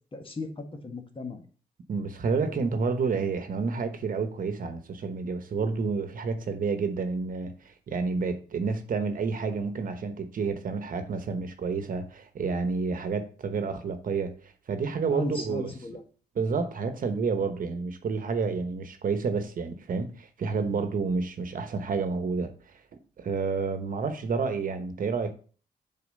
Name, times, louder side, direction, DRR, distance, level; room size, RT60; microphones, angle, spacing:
voice 1, 0.1-1.4 15.1-16.0, left 2 dB, 35° left, 1.6 m, -36 dB
voice 2, 1.9-15.7 16.3-22.5 23.2-25.3, right 4 dB, 60° right, 1.1 m, -29 dB
7.1 x 4.3 x 5.2 m
cardioid pair, 80°, 16 cm